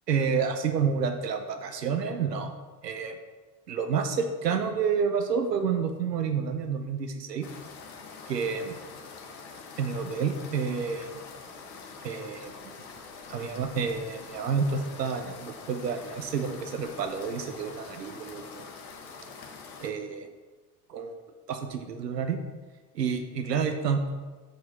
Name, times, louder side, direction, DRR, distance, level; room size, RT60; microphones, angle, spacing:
voice 1, 0.1-2.5 2.8-3.2 3.7-7.5 8.3-8.8 9.8-11.2 12.0-12.7 13.3-18.7 19.8-20.3 20.9-21.2 21.5-22.4 22.9-24.1, right 6 dB, 80° right, 6 dB, 0.8 m, -29 dB
sound 1, 7.4-19.9, left 4 dB, 60° left, 1.2 m, -45 dB
6.7 x 5.0 x 5.4 m, 1.3 s
figure-of-eight pair, 70°, 48 cm